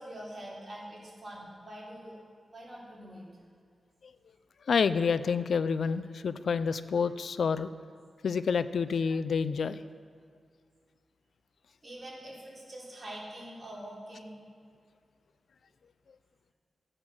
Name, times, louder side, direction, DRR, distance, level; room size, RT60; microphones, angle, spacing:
voice 1, 0.0-2.2 2.5-3.3 11.8-14.3, right 1 dB, 35° right, -7 dB, 3.7 m, -44 dB
voice 2, 4.7-7.7 8.2-9.8, left 5 dB, 75° left, 13 dB, 0.4 m, -28 dB
13.0 x 8.8 x 6.2 m, 2.2 s
wide cardioid pair, 90°, 0 cm